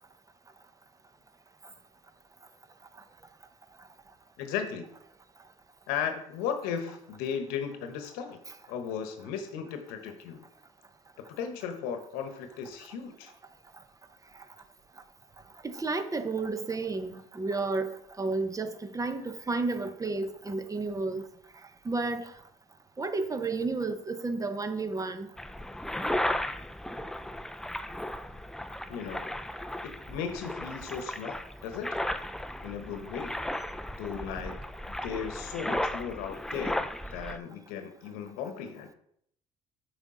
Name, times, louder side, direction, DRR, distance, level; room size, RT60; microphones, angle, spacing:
voice 1, 4.4-4.9 5.9-8.4 8.7-10.4 11.3-13.3 28.9-29.3 29.8-32.0 32.6-33.4 34.0-34.6 35.0-38.9, left 7 dB, 80° left, 1.0 m, -36 dB
voice 2, 15.6-21.2 21.8-22.3 23.0-25.3 36.5-36.6, right 3 dB, 20° right, 0.7 m, -32 dB
sound 1, 25.4-37.4, left 1 dB, 5° left, 0.4 m, -35 dB
6.1 x 5.0 x 3.8 m
supercardioid pair, 70°, 15 cm